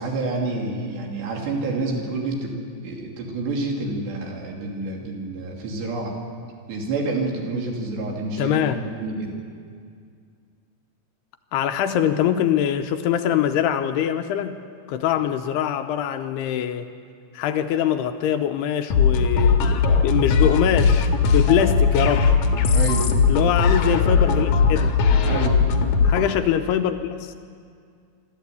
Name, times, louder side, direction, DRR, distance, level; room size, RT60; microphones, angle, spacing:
voice 1, 0.0-2.5 2.8-6.2 6.7-9.4 22.7-23.1 25.2-25.6, right 3 dB, 75° right, 0 dB, 4.9 m, -28 dB
voice 2, 8.4-8.8 11.5-14.6 14.9-16.9 17.3-22.3 23.3-25.0 26.0-27.3, left 10 dB, 80° left, 7 dB, 2.6 m, -23 dB
sound 1, 18.9-26.3, left 5 dB, 65° left, 2.1 m, -19 dB
25.5 x 13.0 x 8.2 m, 2.2 s
omnidirectional pair, 5.0 m